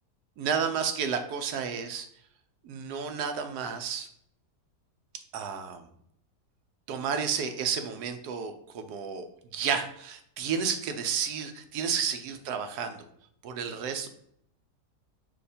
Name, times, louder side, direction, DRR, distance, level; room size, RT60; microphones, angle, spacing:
voice 1, 0.4-2.1 2.6-4.1 5.3-5.8 6.9-13.0 13.4-14.1, right 6 dB, 80° right, 7 dB, 1.1 m, -31 dB
5.2 x 2.2 x 4.1 m, 0.69 s
omnidirectional pair, 1.7 m